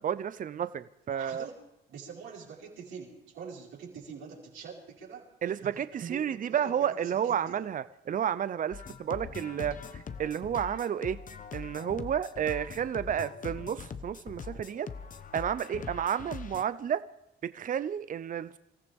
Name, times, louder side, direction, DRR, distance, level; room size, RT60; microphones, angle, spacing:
voice 1, 0.0-1.5 5.4-11.2 11.5-14.9 15.3-17.0 17.4-18.6, right 9 dB, 40° right, 14 dB, 0.6 m, -31 dB
voice 2, 1.1-1.5 1.9-5.3 5.6-7.6, right 6 dB, 80° right, -4 dB, 4.9 m, -45 dB
sound 1, 8.7-16.6, left 6 dB, 40° left, 1.0 m, -42 dB
26.5 x 14.5 x 3.5 m, 0.85 s
cardioid pair, 90°, 20 cm